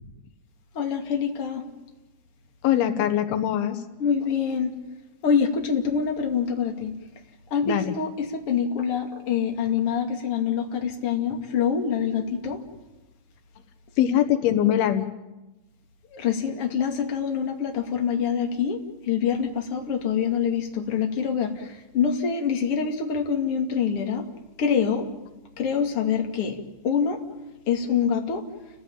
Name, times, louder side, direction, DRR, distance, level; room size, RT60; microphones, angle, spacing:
voice 1, 0.8-1.6 4.0-4.7 5.2-6.9 7.5-12.6 16.1-18.8 19.1-21.5 21.9-24.2 24.6-25.0 25.6-26.6 26.8-27.2 27.7-28.4, left 7 dB, 40° left, 2 dB, 3.0 m, -25 dB
voice 2, 2.6-3.8 7.6-7.9 14.0-15.1, left 11 dB, 85° left, 8 dB, 3.1 m, -22 dB
30.0 x 16.0 x 8.9 m, 1.0 s
omnidirectional pair, 4.4 m